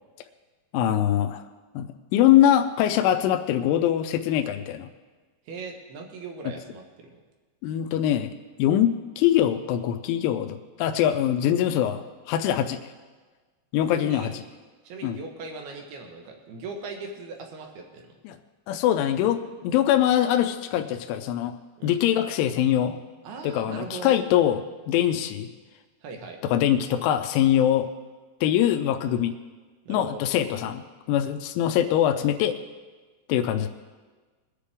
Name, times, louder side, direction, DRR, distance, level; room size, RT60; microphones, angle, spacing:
voice 1, 0.7-1.4 1.7-4.9 6.5-6.6 7.6-8.3 8.6-12.8 13.7-14.4 15.0-15.2 18.2-18.4 18.7-21.5 21.8-23.0 23.4-25.5 26.4-27.9 28.4-29.3 29.9-30.8 31.1-32.6 33.3-33.7, left 11 dB, 85° left, 7 dB, 3.0 m, -23 dB
voice 2, 5.5-7.2 13.9-14.3 14.8-18.1 21.8-22.0 23.2-24.2 26.0-26.4 29.9-30.2, right 4 dB, 70° right, 2 dB, 2.6 m, -39 dB
21.5 x 9.9 x 3.5 m, 1.3 s
omnidirectional pair, 5.7 m